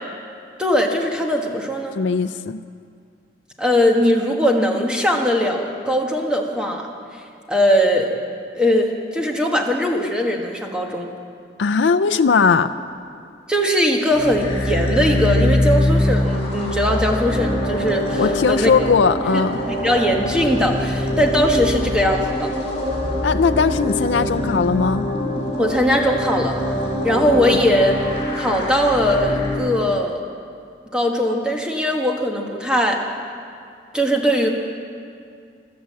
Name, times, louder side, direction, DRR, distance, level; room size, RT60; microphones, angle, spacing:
voice 1, 0.6-1.9 3.6-6.9 7.5-8.1 8.5-11.1 13.5-18.7 19.7-22.5 25.6-26.6 27.0-27.9 28.3-30.2 30.9-33.0 33.9-34.5, equal, 5° right, 1 dB, 1.5 m, -20 dB
voice 2, 1.9-2.6 11.6-12.8 18.2-19.6 23.2-25.1 27.4-27.6, left 5 dB, 80° left, 11 dB, 0.4 m, -19 dB
sound 1, 14.1-29.6, left 1 dB, 35° left, 4.4 m, -23 dB
15.5 x 12.5 x 7.6 m, 2.3 s
head